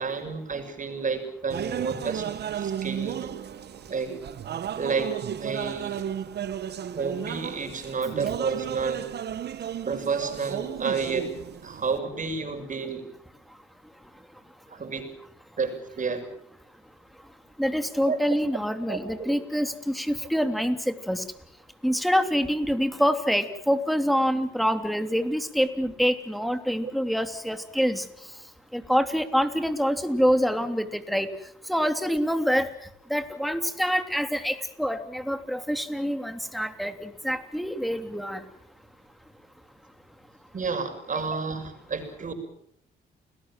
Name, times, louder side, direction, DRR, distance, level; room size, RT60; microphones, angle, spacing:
voice 1, 0.0-2.3 2.6-3.3 3.9-4.1 4.8-6.0 6.9-9.1 9.8-11.3 11.6-13.1 14.7-15.1 15.6-16.3 18.0-18.2 18.9-19.3 26.8-26.9 40.5-42.3, right 5 dB, 40° right, 7 dB, 6.8 m, -30 dB
sound 1, 1.5-12.0, right 9 dB, 60° right, 1.2 m, -34 dB
voice 2, 17.6-21.2 21.8-28.0 28.7-31.3 31.7-32.7 33.1-38.4, equal, ahead, 8 dB, 3.2 m, -26 dB
30.0 x 20.0 x 7.6 m, 0.70 s
cardioid pair, 90°, 20 cm